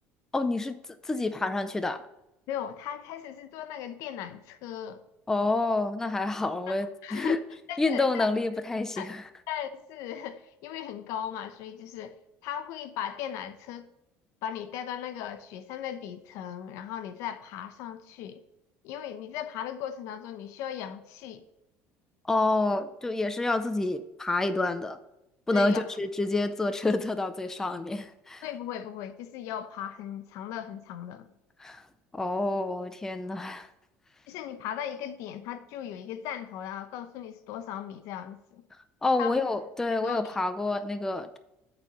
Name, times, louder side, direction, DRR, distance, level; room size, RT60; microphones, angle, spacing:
voice 1, 0.3-0.8 1.0-2.0 5.3-7.4 7.8-9.2 22.3-25.0 25.5-28.5 31.6-31.8 32.1-33.7 39.0-41.4, left 2 dB, 10° left, 0.4 m, -28 dB
voice 2, 2.5-5.0 6.7-6.8 7.0-7.3 7.7-8.3 9.0-9.2 9.5-12.1 12.4-13.9 14.4-18.4 18.8-21.4 25.5-25.9 28.4-31.3 34.3-38.6 39.2-39.4 39.9-40.3, left 10 dB, 70° left, 0.7 m, -37 dB
8.8 x 4.3 x 5.3 m
cardioid pair, 140°, 5 cm